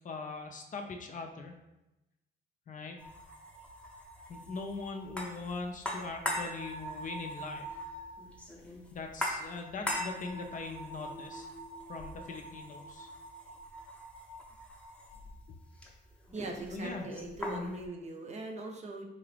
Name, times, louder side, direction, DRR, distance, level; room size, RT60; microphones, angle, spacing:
voice 1, 0.0-1.6 2.7-3.0 4.3-7.7 8.9-11.5 11.9-13.1 15.5-15.6 16.7-17.1 17.4-17.7, left 3 dB, 40° left, 4 dB, 0.5 m, -41 dB
sound 1, 3.0-17.9, equal, 5° left, 0.7 m, -41 dB
voice 2, 16.3-19.0, right 2 dB, 35° right, 2 dB, 0.6 m, -41 dB
3.8 x 2.4 x 3.3 m, 0.95 s
cardioid pair, 90°, 20 cm